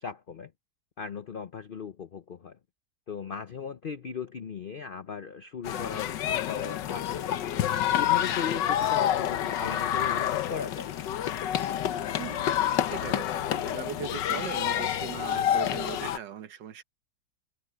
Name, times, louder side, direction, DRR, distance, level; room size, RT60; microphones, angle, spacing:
voice 1, 0.0-0.5 1.0-2.6 3.1-10.9, left 6 dB, 65° left, 0.5 m, -38 dB
sound 1, 5.6-16.2, left 11 dB, 85° left, 1.5 m, -28 dB
voice 2, 12.7-16.8, right 8 dB, 85° right, 1.8 m, -39 dB
omnidirectional pair, 1.9 m